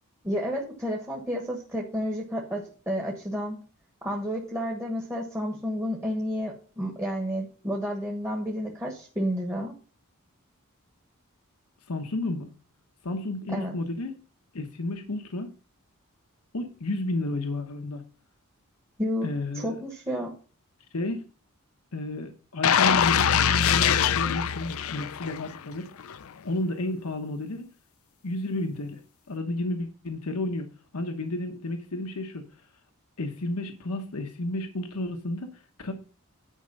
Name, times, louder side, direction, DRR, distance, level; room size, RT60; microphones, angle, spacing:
voice 1, 0.2-3.6 4.0-9.7 13.5-13.7 19.0-19.3 19.5-20.3, equal, 10° right, -1 dB, 1.3 m, -31 dB
voice 2, 11.9-12.5 13.0-14.2 14.5-15.5 16.5-18.0 19.2-19.8 20.9-21.2 21.9-25.9 26.4-27.7 28.2-29.0 29.3-32.5 33.2-35.9, left 2 dB, 85° left, 5 dB, 1.1 m, -32 dB
sound 1, 22.6-25.6 26.0-26.1, left 8 dB, 70° left, 0.5 m, -23 dB
10.0 x 5.1 x 5.3 m, 0.38 s
head